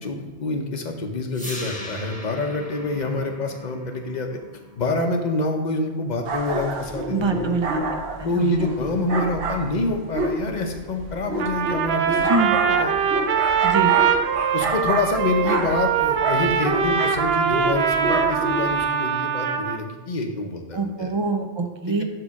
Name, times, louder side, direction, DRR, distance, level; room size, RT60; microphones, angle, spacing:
voice 1, 0.0-4.3 4.8-7.5 8.2-13.0 14.5-21.1 21.9-22.0, left 2 dB, 45° left, 4 dB, 0.9 m, -27 dB
sound 1, 1.3-7.4, left 1 dB, 5° left, 1.2 m, -40 dB
sound 2, 6.2-18.8, right 2 dB, 90° right, 1.1 m, -28 dB
voice 2, 7.1-7.8 8.2-8.7 12.3-12.5 13.6-13.9 20.7-22.0, right 3 dB, 35° right, 5 dB, 0.5 m, -24 dB
Trumpet, 11.4-19.8, right 7 dB, 70° right, 0.8 m, -22 dB
7.6 x 3.3 x 6.2 m, 1.3 s
omnidirectional pair, 1.1 m